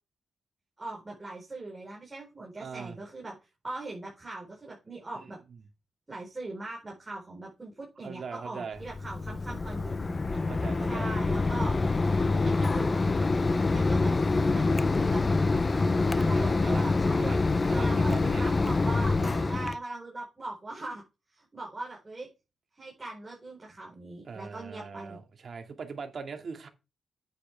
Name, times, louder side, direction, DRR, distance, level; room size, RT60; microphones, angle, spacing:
voice 1, 0.8-3.4 3.6-5.4 6.1-10.4 10.9-11.8 12.4-13.0 13.7-14.7 14.9-15.2 16.1-17.4 17.7-19.2 19.4-21.0 21.3-22.3 22.8-25.2, right 2 dB, 20° right, 4.5 m, -40 dB
voice 2, 2.6-3.0 5.2-5.3 8.0-8.8 10.5-11.1 16.4-18.5 19.2-19.5 24.2-26.7, right 5 dB, 50° right, 2.3 m, -41 dB
Mechanisms, 8.8-19.8, left 3 dB, 30° left, 0.7 m, -26 dB
9.6 x 9.0 x 3.5 m
wide cardioid pair, 130°, 0 cm